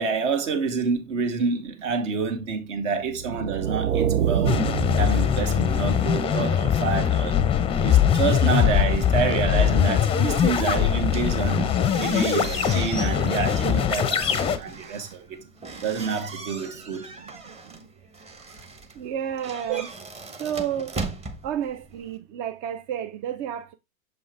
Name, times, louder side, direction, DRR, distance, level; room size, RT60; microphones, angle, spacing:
voice 1, 0.0-4.6 5.0-7.4 7.8-15.4 15.8-17.1 19.7-19.8, right 5 dB, 60° right, 2.0 m, -28 dB
sound 1, 3.1-6.1, right 8 dB, 85° right, 0.7 m, -26 dB
sound 2, 4.4-14.6, left 8 dB, 15° left, 0.6 m, -22 dB
sound 3, 11.0-22.2, right 3 dB, 15° right, 1.0 m, -39 dB
voice 2, 19.0-19.9 20.4-20.9 21.4-23.7, right 9 dB, 30° right, 0.4 m, -30 dB
6.7 x 5.3 x 3.2 m
hypercardioid pair, 105°, 41 cm